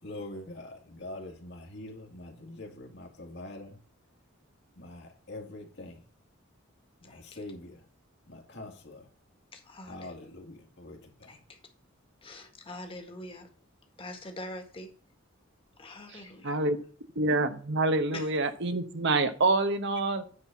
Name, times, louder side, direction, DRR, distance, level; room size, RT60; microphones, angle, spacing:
voice 1, 0.0-3.8 4.8-6.0 7.0-7.8 8.3-9.1 9.8-11.4, left 2 dB, 60° left, 2 dB, 2.2 m, -44 dB
voice 2, 9.5-10.1 11.3-11.6 12.2-13.5 14.0-14.9 15.8-16.6 18.1-18.3, left 1 dB, 25° left, 5 dB, 1.7 m, -44 dB
voice 3, 16.4-16.8 17.2-20.2, right 2 dB, 60° right, 9 dB, 1.0 m, -26 dB
9.6 x 4.2 x 7.3 m, 0.42 s
head